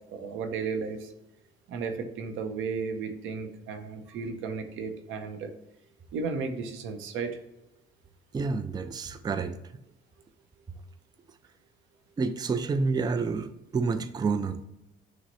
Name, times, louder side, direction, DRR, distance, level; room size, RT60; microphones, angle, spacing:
voice 1, 0.1-1.1 1.7-5.5 6.1-7.3, right 5 dB, 90° right, 6 dB, 0.7 m, -34 dB
voice 2, 8.3-9.6 12.2-14.6, right 4 dB, 20° right, 9 dB, 0.3 m, -29 dB
6.1 x 2.1 x 4.0 m, 0.90 s
cardioid pair, 90°, 20 cm